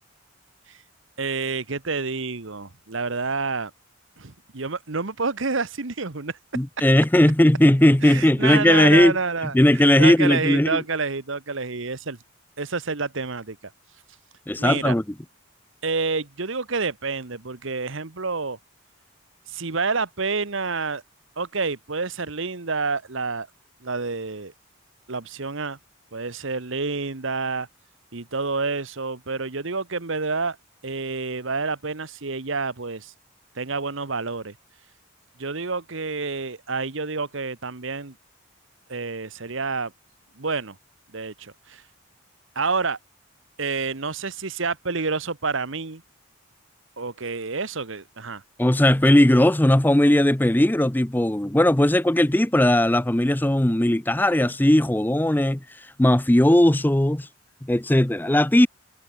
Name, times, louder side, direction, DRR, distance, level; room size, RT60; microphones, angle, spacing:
voice 1, 1.2-3.7 4.2-6.4 8.0-12.2 12.6-13.6 14.6-15.0 15.8-18.6 19.5-21.0 21.4-23.5 23.8-24.5 25.1-25.8 26.1-27.7 28.1-30.6 30.8-33.1 33.5-34.5 35.4-38.1 38.9-39.9 40.4-40.8 41.1-41.8 42.5-43.0 43.6-46.0 47.0-48.4, right 4 dB, 65° right, 1.3 m, -28 dB
voice 2, 6.5-9.2 9.5-10.8 14.5-15.0 48.6-55.6 56.0-57.3 57.6-58.7, left 1 dB, 10° left, 0.5 m, -18 dB
head